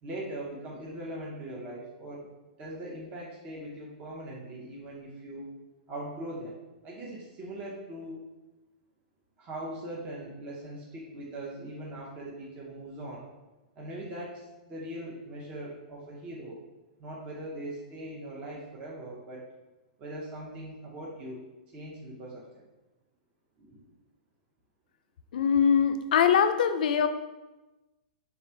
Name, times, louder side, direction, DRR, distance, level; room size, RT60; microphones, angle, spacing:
voice 1, 0.0-2.3 2.6-5.5 5.9-6.6 6.8-8.2 9.4-13.3 13.8-16.6 17.0-19.5 20.0-21.4 21.7-22.6 23.6-23.8, right 1 dB, 25° right, -4 dB, 0.7 m, -40 dB
voice 2, 25.3-27.1, left 7 dB, 75° left, 9 dB, 0.3 m, -22 dB
3.3 x 2.4 x 4.4 m, 1.1 s
hypercardioid pair, 145°, 5 cm